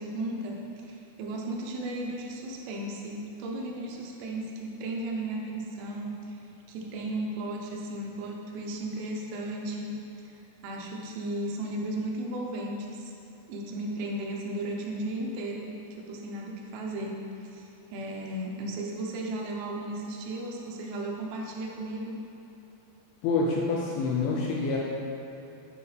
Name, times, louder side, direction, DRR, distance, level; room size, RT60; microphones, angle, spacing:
voice 1, 0.0-6.4 6.7-10.0 10.2-10.3 10.6-13.1 13.5-22.2, right 1 dB, 85° right, -1 dB, 2.9 m, -35 dB
voice 2, 23.2-24.8, left 3 dB, 80° left, -3 dB, 2.3 m, -27 dB
9.4 x 4.9 x 3.3 m, 2.9 s
omnidirectional pair, 4.9 m